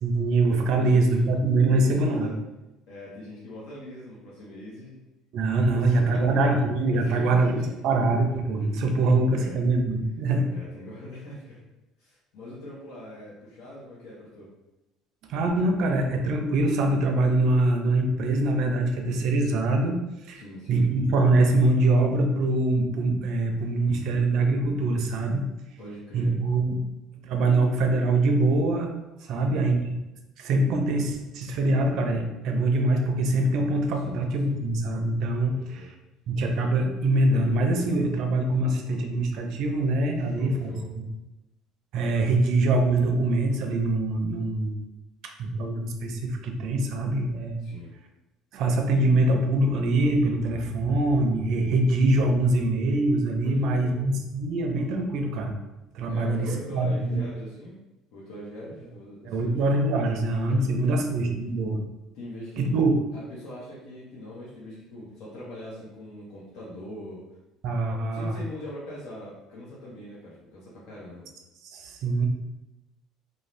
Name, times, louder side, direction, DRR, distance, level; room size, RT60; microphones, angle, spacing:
voice 1, 0.0-2.3 5.3-7.6 7.8-10.5 15.3-20.0 20.3-20.4 20.7-25.4 26.1-26.7 27.2-28.9 29.2-30.0 30.4-35.9 36.3-41.0 41.9-44.8 45.2-47.7 48.5-55.5 55.9-57.2 59.2-61.8 62.6-63.0 67.6-68.4 71.6-72.3, right 2 dB, 60° right, 4 dB, 0.4 m, -24 dB
voice 2, 0.7-1.3 1.7-2.3 2.9-5.0 5.7-6.4 6.9-7.7 8.6-8.7 9.3-9.6 10.5-11.6 12.0-14.5 20.3-20.8 25.8-26.4 29.3-29.7 33.9-34.6 35.5-35.9 40.2-40.9 47.6-47.9 53.4-54.0 56.1-57.8 58.1-59.6 60.5-61.1 62.1-62.7 63.1-67.2 68.1-71.2, left 1 dB, 75° left, -7 dB, 0.7 m, -41 dB
2.5 x 2.0 x 3.1 m, 0.99 s
cardioid pair, 145°, 0 cm